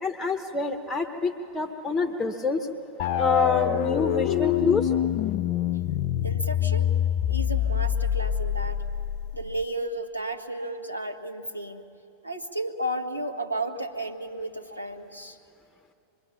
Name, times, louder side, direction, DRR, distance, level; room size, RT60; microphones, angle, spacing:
voice 1, 0.0-2.7 3.2-4.9, left 4 dB, 10° left, 7 dB, 1.0 m, -26 dB
sound 1, 3.0-9.6, left 11 dB, 45° left, 0.5 m, -26 dB
voice 2, 6.2-6.9 7.3-8.8 9.3-11.8 12.2-15.4, right 1 dB, 90° right, 3 dB, 1.3 m, -33 dB
25.0 x 21.5 x 5.9 m, 2.8 s
figure-of-eight pair, 90°, 0 cm